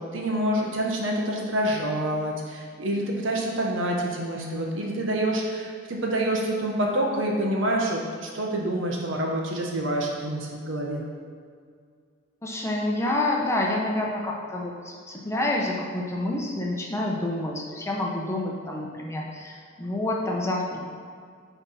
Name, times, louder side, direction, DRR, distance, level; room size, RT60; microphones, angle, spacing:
voice 1, 0.0-11.0, right 1 dB, 80° right, -1 dB, 1.1 m, -27 dB
voice 2, 12.4-20.8, left 1 dB, 15° left, -2 dB, 0.8 m, -28 dB
9.8 x 3.5 x 4.2 m, 2.1 s
head